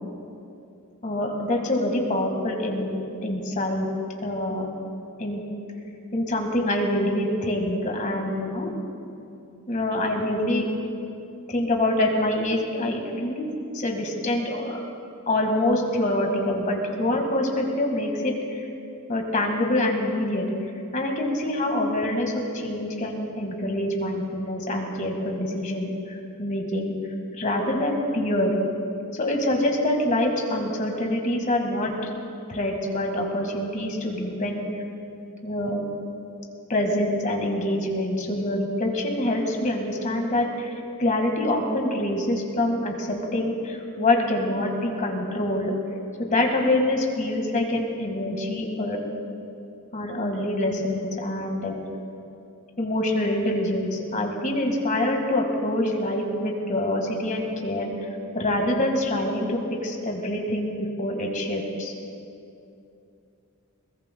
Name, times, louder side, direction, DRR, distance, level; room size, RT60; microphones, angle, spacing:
voice 1, 1.0-3.9 4.2-4.7 5.2-5.4 6.1-8.7 9.7-10.7 11.5-13.5 13.7-14.8 15.3-18.6 19.1-20.4 20.9-26.9 27.3-28.6 29.1-31.9 32.5-34.6 35.4-35.8 36.7-40.7 41.0-45.7 46.2-49.0 49.9-51.7 52.8-57.9 58.3-61.9, left 1 dB, 35° left, 2 dB, 1.8 m, -25 dB
21.5 x 20.0 x 2.3 m, 2.6 s
head